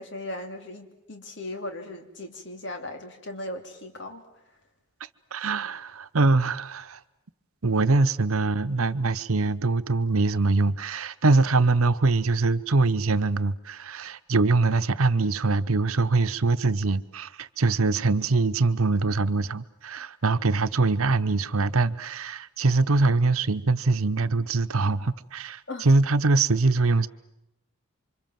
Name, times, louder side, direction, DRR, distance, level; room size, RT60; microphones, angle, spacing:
voice 1, 0.0-4.2 25.7-25.8, left 1 dB, 55° left, 3.0 m, -37 dB
voice 2, 5.3-7.0 7.6-27.1, right 3 dB, 85° right, 0.9 m, -23 dB
28.0 x 25.5 x 7.6 m
head